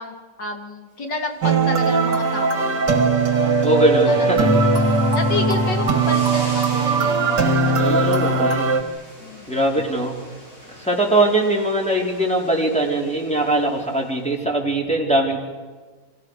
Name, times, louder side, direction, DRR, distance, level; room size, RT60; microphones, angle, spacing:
voice 1, 0.0-3.1 3.4-3.6 4.1-4.3 4.6-8.1 9.2-9.5, left 3 dB, 60° left, 4 dB, 3.3 m, -31 dB
sound 1, 1.1-14.3, equal, 30° left, 8.5 m, -42 dB
sound 2, 1.4-8.8, right 3 dB, 60° right, 2.7 m, -19 dB
voice 2, 3.6-4.5 7.8-8.7 9.5-10.2 10.8-15.4, right 1 dB, 5° left, -2 dB, 4.5 m, -21 dB
30.0 x 26.5 x 6.7 m, 1.4 s
omnidirectional pair, 2.1 m